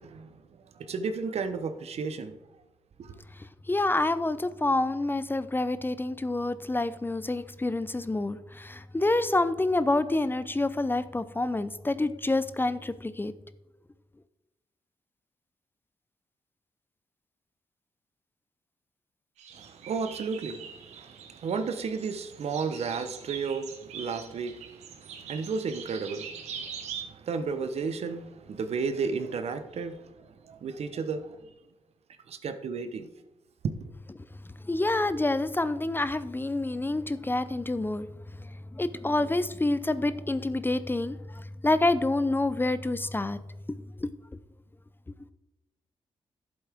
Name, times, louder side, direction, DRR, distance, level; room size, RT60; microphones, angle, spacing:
voice 1, 0.0-2.4 3.0-3.2 19.5-31.5 32.3-33.1 33.6-33.8, right 5 dB, 70° right, 0.9 m, -33 dB
voice 2, 3.7-13.3 34.7-38.1 38.7-43.4 43.7-44.1, left 2 dB, 20° left, 0.6 m, -27 dB
sound 1, 19.4-27.0, right 7 dB, 90° right, 1.1 m, -43 dB
11.0 x 7.8 x 3.6 m
supercardioid pair, 55°, 11 cm